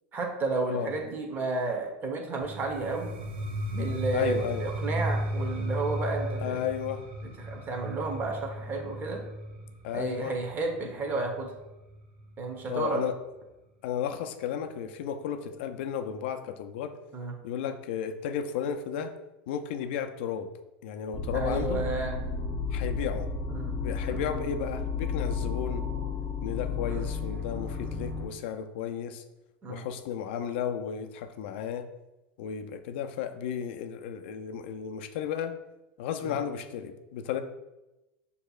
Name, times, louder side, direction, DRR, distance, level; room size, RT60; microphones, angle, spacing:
voice 1, 0.1-3.1 3.7-6.6 7.4-9.2 9.9-11.5 12.4-13.0 17.1-17.3 21.3-22.2 23.5-23.7 24.1-24.3 26.8-27.0 29.6-29.8 36.2-36.4, right 3 dB, 30° right, 2 dB, 1.0 m, -32 dB
sound 1, 2.4-12.2, equal, 80° right, 0.9 m, -35 dB
voice 2, 4.1-4.7 6.4-7.1 9.8-10.4 12.7-13.2 13.8-17.0 17.4-19.2 19.5-20.5 20.8-21.8 22.7-23.3 23.8-25.8 26.4-29.2 29.7-31.9 32.4-35.5 36.0-37.4, left 8 dB, 75° left, 8 dB, 0.4 m, -33 dB
sound 2, 21.1-28.3, left 4 dB, 25° left, 1.0 m, -32 dB
6.4 x 2.8 x 2.4 m, 1.0 s
supercardioid pair, 120°, 6 cm